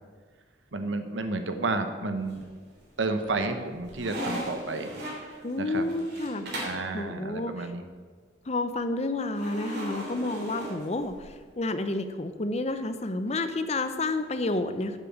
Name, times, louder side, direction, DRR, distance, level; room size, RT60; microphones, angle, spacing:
voice 1, 0.7-2.4 3.0-5.0 5.3-5.8 6.6-7.8, right 3 dB, 85° right, 7 dB, 1.1 m, -31 dB
sound 1, 2.2-2.8 3.2-6.9 9.3-11.4, equal, 60° right, 3.3 m, -37 dB
voice 2, 5.4-6.5 6.9-7.7 8.5-15.0, left 2 dB, 35° left, 9 dB, 0.7 m, -30 dB
8.2 x 7.5 x 7.2 m, 1.5 s
head